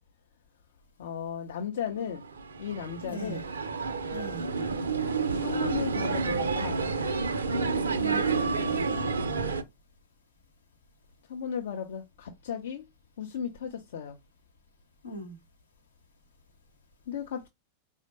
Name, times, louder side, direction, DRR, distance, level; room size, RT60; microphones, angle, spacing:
voice 1, 1.0-2.2 2.6-3.4 4.0-4.1 5.3-6.8 11.3-12.9 13.2-14.2 17.1-17.5, left 8 dB, 60° left, 0.5 m, -35 dB
sound 1, 1.9-9.6, right 4 dB, 70° right, 0.4 m, -29 dB
voice 2, 3.0-3.4 4.1-4.5 7.9-9.2 15.0-15.4, equal, 75° left, 0.9 m, -41 dB
4.4 x 2.1 x 2.9 m
figure-of-eight pair, 90°, 0 cm